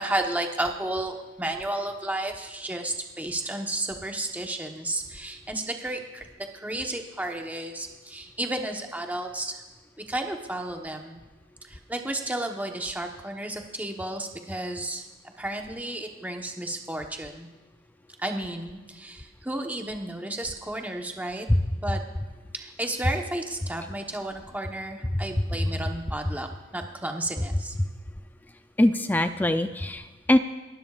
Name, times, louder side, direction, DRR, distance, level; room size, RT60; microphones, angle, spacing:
voice 1, 0.0-9.6 10.1-11.2 11.7-15.0 15.4-17.5 18.2-21.5 21.8-22.0 22.5-27.7, right 1 dB, 10° right, 3 dB, 1.0 m, -32 dB
voice 2, 28.8-30.4, left 1 dB, 10° left, 9 dB, 0.4 m, -22 dB
29.0 x 12.0 x 2.4 m, 1.2 s
head